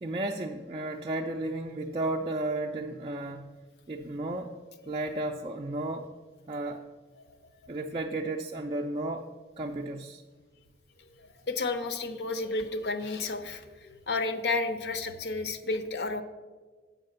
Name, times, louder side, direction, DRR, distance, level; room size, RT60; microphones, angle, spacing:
voice 1, 0.0-3.5 3.9-4.5 4.9-6.1 6.5-6.8 7.7-9.3 9.6-10.2, right 2 dB, 30° right, 1 dB, 0.3 m, -33 dB
voice 2, 11.2-16.2, left 3 dB, 65° left, 10 dB, 0.7 m, -32 dB
7.5 x 5.6 x 6.6 m, 1.4 s
head